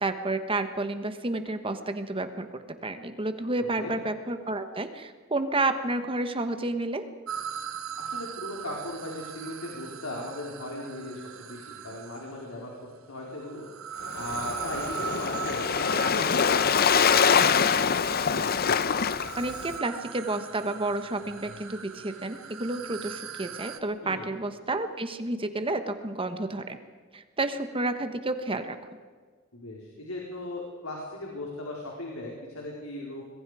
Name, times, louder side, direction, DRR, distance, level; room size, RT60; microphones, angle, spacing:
voice 1, 0.0-7.1 19.4-26.8 27.1-28.8, right 2 dB, 25° right, 9 dB, 1.3 m, -30 dB
voice 2, 3.5-3.9 8.0-12.7 13.1-13.7 14.1-18.0 24.0-24.3 29.5-33.2, left 1 dB, 90° left, -2 dB, 4.2 m, -38 dB
sound 1, 7.3-12.5 13.3-23.8, right 8 dB, 75° right, 1.4 m, -40 dB
Waves surf, 14.1-19.8, left 6 dB, 45° left, 0.7 m, -24 dB
26.0 x 21.5 x 4.9 m, 1.5 s
head